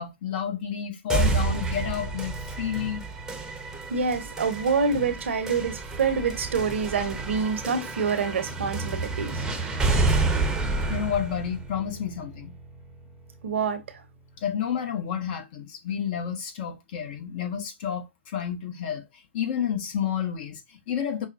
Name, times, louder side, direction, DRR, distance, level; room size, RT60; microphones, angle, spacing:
voice 1, 0.0-3.0 10.9-12.6 14.4-21.3, left 8 dB, 45° left, 1.0 m, -30 dB
sound 1, 1.1-13.1, right 3 dB, 10° right, 0.8 m, -29 dB
voice 2, 3.9-9.9 13.4-14.0, right 5 dB, 70° right, 0.8 m, -27 dB
5.4 x 2.2 x 2.6 m
figure-of-eight pair, 115°, 7 cm